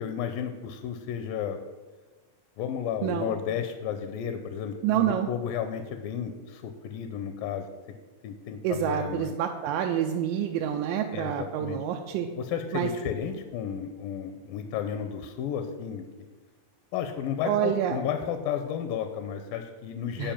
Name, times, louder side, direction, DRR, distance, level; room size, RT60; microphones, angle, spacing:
voice 1, 0.0-1.6 2.6-7.7 8.2-9.3 11.1-11.8 12.4-16.1 16.9-20.3, left 8 dB, 80° left, 7 dB, 2.4 m, -33 dB
voice 2, 3.0-3.3 4.8-5.3 8.6-12.3 12.7-12.9 17.4-18.0 20.2-20.3, right 10 dB, 85° right, 3 dB, 2.3 m, -27 dB
10.5 x 5.3 x 7.3 m, 1.3 s
omnidirectional pair, 4.0 m